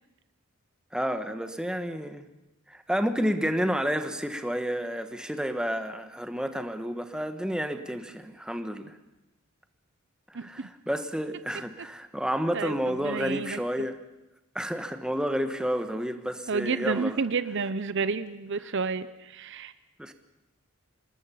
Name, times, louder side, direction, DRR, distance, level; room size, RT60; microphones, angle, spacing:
voice 1, 0.9-2.2 2.7-8.9 10.3-14.0 14.5-17.2 20.0-20.1, equal, 5° right, 7 dB, 1.2 m, -30 dB
voice 2, 10.3-10.7 12.5-13.6 16.5-19.7, right 4 dB, 55° right, 14 dB, 0.7 m, -30 dB
26.5 x 20.5 x 5.7 m, 0.95 s
head